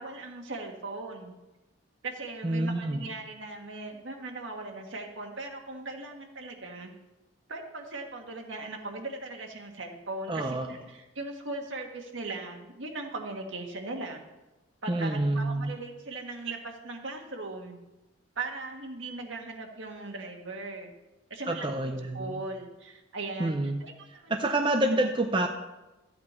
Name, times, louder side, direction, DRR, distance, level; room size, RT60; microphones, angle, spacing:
voice 1, 0.0-1.3 2.0-6.9 7.5-14.2 14.8-17.8 18.3-20.9 21.3-24.5 24.8-25.0 25.3-25.5, right 2 dB, 65° right, 3 dB, 1.6 m, -39 dB
voice 2, 2.4-3.1 10.3-10.7 14.9-15.7 21.5-22.4 23.4-23.8 24.3-25.5, right 1 dB, 25° right, 4 dB, 0.6 m, -28 dB
13.5 x 8.7 x 4.4 m, 1.1 s
head